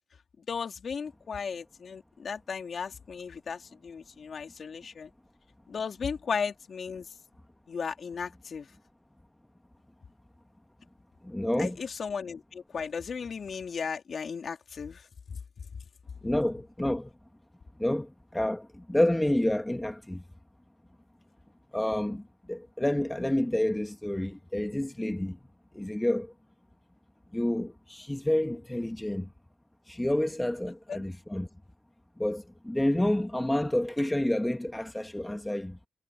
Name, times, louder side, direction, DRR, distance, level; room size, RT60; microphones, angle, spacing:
voice 1, 0.4-5.1 5.7-7.1 7.7-8.7 11.6-15.4 30.9-31.0, left 6 dB, 45° left, 3.2 m, -36 dB
voice 2, 11.2-11.8 16.2-17.1 17.8-20.2 21.7-22.2 22.5-25.4 25.7-26.3 27.3-29.3 29.9-31.5 32.2-35.8, left 1 dB, 5° left, 1.6 m, -29 dB
cardioid pair, 90°, 0 cm